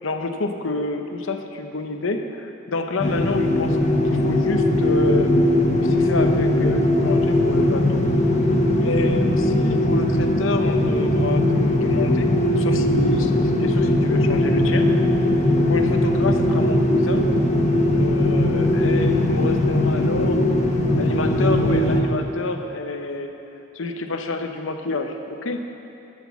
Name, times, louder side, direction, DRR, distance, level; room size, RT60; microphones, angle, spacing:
voice 1, 0.0-3.8 4.0-5.3 5.8-8.0 8.8-12.3 12.6-14.9 15.7-17.3 17.9-20.4 21.0-23.3 23.7-25.6, left 3 dB, 70° left, 6 dB, 0.8 m, -28 dB
sound 1, 3.0-22.0, left 1 dB, 35° left, 1.0 m, -19 dB
11.5 x 6.2 x 7.0 m, 2.9 s
head